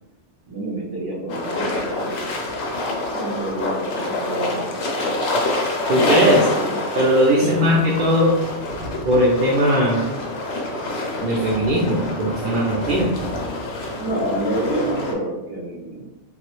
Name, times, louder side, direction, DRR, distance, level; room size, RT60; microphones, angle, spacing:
voice 1, 0.5-2.2 3.1-5.1 6.5-6.7 7.4-7.8 14.0-16.0, right 1 dB, 20° right, -9 dB, 1.1 m, -28 dB
sound 1, 1.3-15.1, left 2 dB, 70° left, 0.9 m, -26 dB
voice 2, 5.9-6.5 7.0-8.4 9.0-10.0 11.2-13.1, equal, 60° right, -4 dB, 0.6 m, -18 dB
3.0 x 2.3 x 3.0 m, 1.0 s
omnidirectional pair, 1.2 m